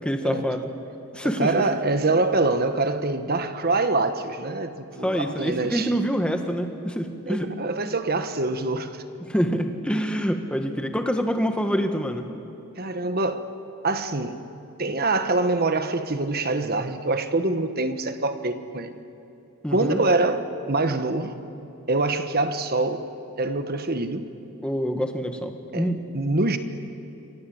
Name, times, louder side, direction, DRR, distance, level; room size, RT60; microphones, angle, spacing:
voice 1, 0.0-0.7 1.1-1.6 5.0-7.5 9.2-12.3 19.6-20.0 24.6-26.1, equal, 5° left, 1.6 m, -26 dB
voice 2, 1.4-5.9 7.3-9.0 12.8-13.5 13.8-14.4 14.8-19.0 19.7-21.4 21.9-23.1 23.4-24.3 25.7-26.6, right 2 dB, 45° right, 1.4 m, -25 dB
28.0 x 25.0 x 8.0 m
head